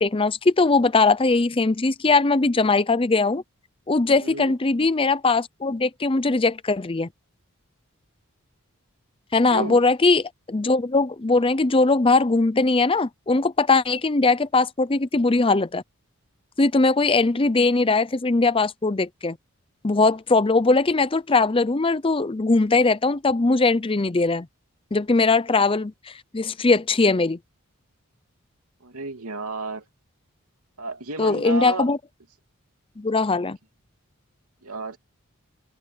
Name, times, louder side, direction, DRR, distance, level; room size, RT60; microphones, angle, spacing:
voice 1, 0.0-3.4 3.9-7.1 9.3-15.8 16.6-19.4 19.8-24.5 24.9-27.4 31.2-32.0 33.0-33.6, left 3 dB, 25° left, 0.6 m, -20 dB
voice 2, 4.2-4.5 9.5-9.8 28.8-29.9 30.8-31.9 34.6-35.0, right 3 dB, 85° right, 2.9 m, -32 dB
head